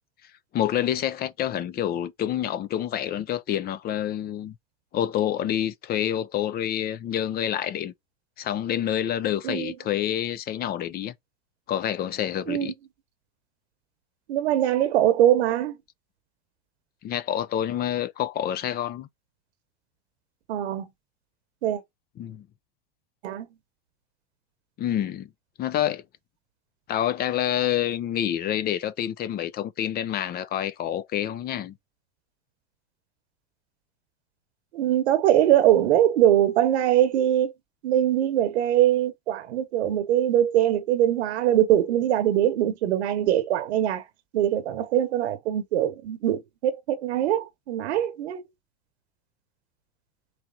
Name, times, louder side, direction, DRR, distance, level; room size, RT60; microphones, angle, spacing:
voice 1, 0.5-4.5 4.9-7.9 8.4-11.1 11.7-12.7 17.0-19.1 22.2-22.4 24.8-25.3 25.6-26.0 26.9-31.7, left 11 dB, 30° left, 0.5 m, -27 dB
voice 2, 14.3-15.8 20.5-20.9 21.6-21.8 23.2-23.5 34.7-37.5 37.8-44.0 44.3-48.4, right 11 dB, 80° right, 1.0 m, -22 dB
4.2 x 3.2 x 3.8 m
supercardioid pair, 125°, 32 cm